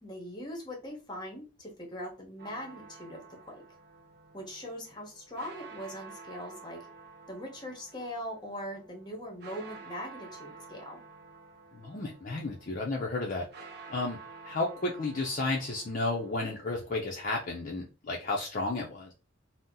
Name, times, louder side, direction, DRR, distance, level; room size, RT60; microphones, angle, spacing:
voice 1, 0.0-3.6 4.3-6.8 7.3-11.0, equal, 20° left, 1 dB, 0.9 m, -41 dB
sound 1, 2.4-17.3, right 4 dB, 55° right, 0.6 m, -51 dB
voice 2, 11.7-13.4 13.9-14.2 14.4-19.1, left 2 dB, 45° left, -1 dB, 0.5 m, -32 dB
2.7 x 2.0 x 3.6 m, 0.32 s
head